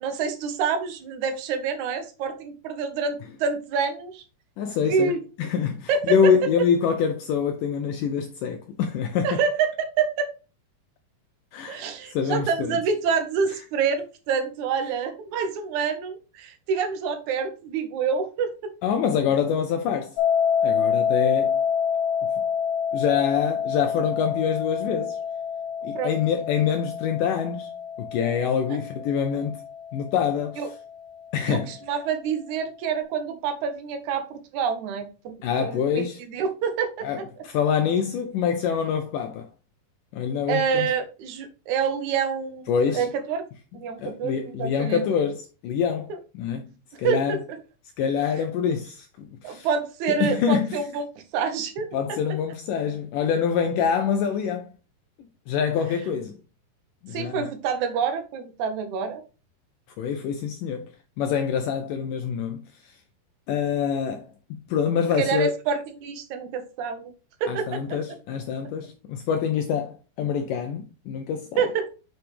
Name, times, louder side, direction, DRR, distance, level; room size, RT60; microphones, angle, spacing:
voice 1, 0.0-4.2 4.9-5.2 5.9-6.3 9.2-10.3 11.7-18.7 26.0-26.2 28.7-28.8 30.6-30.7 31.5-36.0 36.3-37.3 40.5-42.6 42.9-43.4 43.7-45.0 47.0-47.4 49.4-51.0 51.3-51.9 57.1-59.2 65.2-67.1 67.4-67.8 71.6-71.9, right 6 dB, 65° right, 2.0 m, -27 dB
voice 2, 4.6-9.4 11.5-12.8 18.8-20.2 20.6-21.6 22.9-25.2 25.8-27.7 28.0-29.6 29.9-30.7 31.3-31.7 35.4-36.2 37.0-39.5 40.1-40.9 42.7-43.1 44.0-46.7 47.0-47.4 48.0-49.7 50.1-50.8 51.9-54.7 55.5-56.4 57.0-57.5 60.0-63.0 63.5-64.3 64.7-65.5 67.5-71.5, left 7 dB, 80° left, 1.9 m, -25 dB
sound 1, 20.2-31.1, left 7 dB, 45° left, 1.7 m, -27 dB
6.6 x 6.0 x 3.3 m
omnidirectional pair, 4.5 m